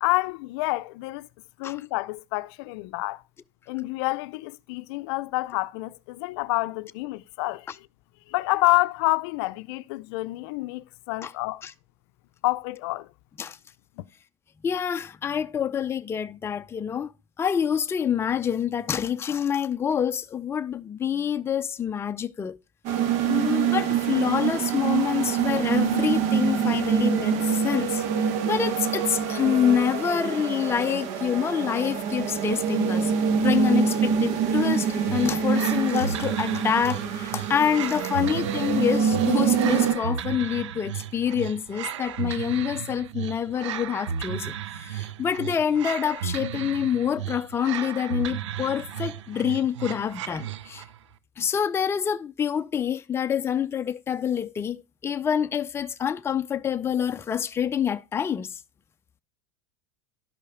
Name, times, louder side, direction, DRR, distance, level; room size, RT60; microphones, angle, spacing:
voice 1, 0.0-1.3 1.6-3.2 3.7-7.9 8.3-11.6 12.4-13.1 14.0-14.1, left 22 dB, 60° left, 0.6 m, -28 dB
voice 2, 14.6-17.1 17.4-22.6 23.3-28.0 28.4-33.1 33.4-50.8 51.4-58.6, left 8 dB, 15° left, 0.6 m, -27 dB
sound 1, 22.8-39.9, right 7 dB, 50° right, 1.9 m, -25 dB
sound 2, 35.1-51.0, right 8 dB, 90° right, 0.8 m, -34 dB
11.5 x 5.5 x 4.9 m
supercardioid pair, 135°, 15 cm